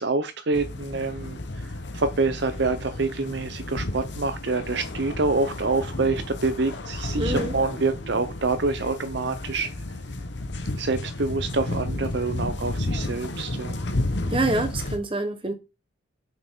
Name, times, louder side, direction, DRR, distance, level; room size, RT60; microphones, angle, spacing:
voice 1, 0.0-1.4 1.9-9.7 10.8-13.7, right 3 dB, 60° right, 0.7 m, -26 dB
sound 1, 0.5-15.0, left 2 dB, 60° left, 1.2 m, -32 dB
voice 2, 7.2-7.5 14.3-15.5, right 2 dB, 25° right, 1.1 m, -26 dB
7.0 x 6.1 x 3.7 m
head